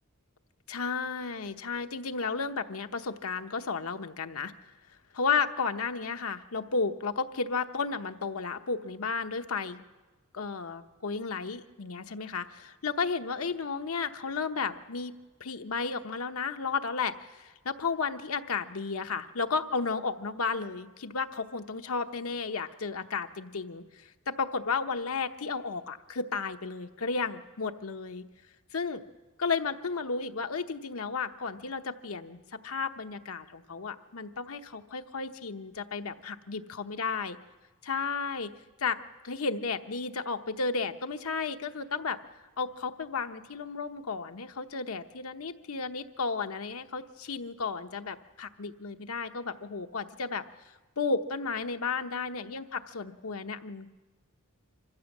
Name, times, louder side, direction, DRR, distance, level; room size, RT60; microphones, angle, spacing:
voice 1, 0.7-4.5 5.1-9.8 10.3-15.1 15.4-28.2 28.7-29.0 29.4-37.4 37.8-38.5 38.8-39.0 39.2-42.2 42.6-50.4 51.0-53.9, left 4 dB, 90° left, 8 dB, 0.9 m, -33 dB
25.0 x 15.0 x 7.3 m, 1.2 s
head